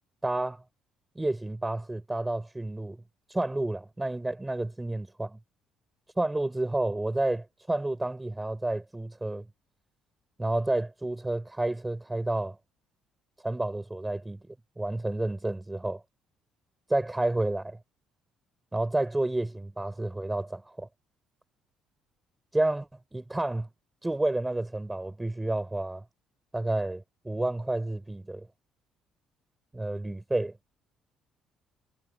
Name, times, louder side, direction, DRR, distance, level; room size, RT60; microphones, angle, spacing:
voice 1, 0.2-0.6 1.2-3.0 3.3-5.4 6.2-9.4 10.4-12.6 13.4-14.4 14.8-16.0 16.9-17.8 18.7-20.9 22.5-23.7 24.0-26.0 26.5-28.5 29.7-30.5, right 2 dB, 15° right, 6.0 m, -30 dB
supercardioid pair, 65°, 0 cm